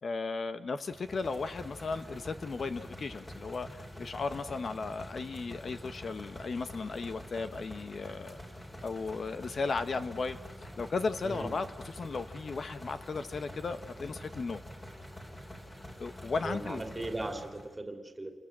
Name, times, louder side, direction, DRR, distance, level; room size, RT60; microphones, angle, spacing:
voice 1, 0.0-8.4 8.8-14.6 16.0-16.8, left 4 dB, 45° left, 11 dB, 0.9 m, -35 dB
sound 1, 0.9-17.8, left 1 dB, 20° left, 3.7 m, -46 dB
voice 2, 16.4-18.3, right 2 dB, 15° right, 6 dB, 2.6 m, -38 dB
29.0 x 21.0 x 8.7 m, 1.2 s
wide cardioid pair, 160°, 0 cm